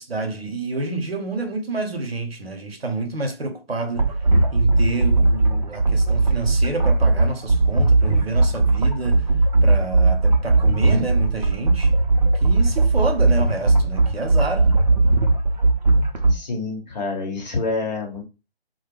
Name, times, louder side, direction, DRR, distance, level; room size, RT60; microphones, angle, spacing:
voice 1, 0.0-4.1 4.5-9.3 9.6-11.9 12.4-14.7, right 3 dB, 70° right, 0.8 m, -28 dB
sound 1, 4.0-16.3, right 2 dB, 40° right, 0.5 m, -18 dB
voice 2, 16.3-18.2, left 3 dB, 40° left, 1.1 m, -27 dB
2.2 x 2.1 x 3.2 m
figure-of-eight pair, 145°, 32 cm